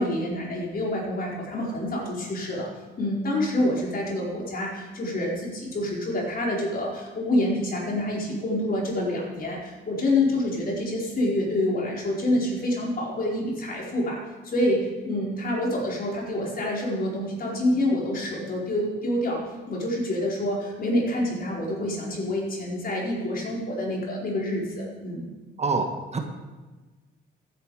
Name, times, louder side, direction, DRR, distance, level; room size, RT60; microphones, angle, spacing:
voice 1, 0.0-2.7 3.0-14.2 14.4-19.4 19.7-25.3, left 1 dB, 45° left, -3 dB, 4.7 m, -27 dB
voice 2, 25.6-26.2, right 4 dB, 35° right, 4 dB, 1.6 m, -26 dB
15.0 x 9.6 x 4.9 m, 1.2 s
cardioid pair, 90°, 20 cm